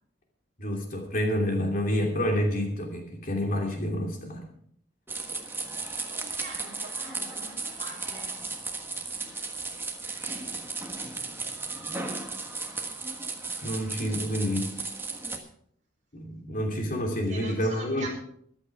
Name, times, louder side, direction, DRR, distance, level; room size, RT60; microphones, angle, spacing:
voice 1, 0.6-4.5 13.6-14.7 16.1-18.1, equal, 45° left, 2 dB, 2.8 m, -28 dB
sound 1, 5.1-15.4, right 3 dB, 10° right, 1.4 m, -35 dB
voice 2, 6.1-8.3 17.3-18.1, right 3 dB, 40° right, -1 dB, 5.1 m, -43 dB
14.5 x 12.0 x 4.8 m, 0.64 s
head